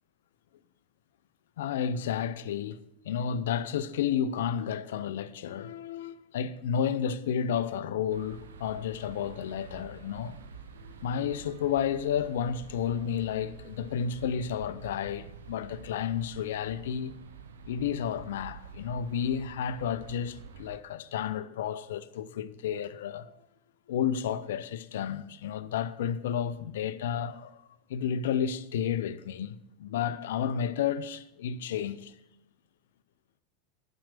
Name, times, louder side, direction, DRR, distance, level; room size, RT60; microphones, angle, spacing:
voice 1, 1.6-2.8 3.0-10.4 10.8-17.1 17.7-23.4 23.9-27.6 27.9-32.1, left 8 dB, 70° left, 0.5 m, -31 dB
sound 1, 8.1-20.8, right 5 dB, 75° right, 0.9 m, -48 dB
11.5 x 5.9 x 6.6 m
hypercardioid pair, 90°, 0 cm